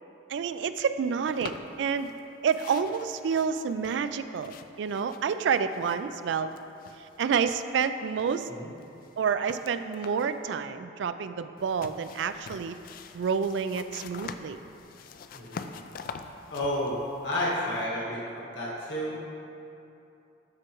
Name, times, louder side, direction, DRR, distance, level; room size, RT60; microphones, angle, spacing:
voice 1, 0.3-2.1 2.4-6.5 7.2-8.5 9.2-12.8 13.1-14.6, right 6 dB, 70° right, 11 dB, 0.3 m, -29 dB
sound 1, 1.3-2.2 2.5-6.2 6.5-7.9 8.2-10.4 11.6-17.9, left 5 dB, 50° left, 0.3 m, -45 dB
voice 2, 15.3-15.7 16.5-19.2, left 1 dB, 70° left, -6 dB, 1.6 m, -31 dB
12.5 x 4.7 x 3.0 m, 2.8 s
head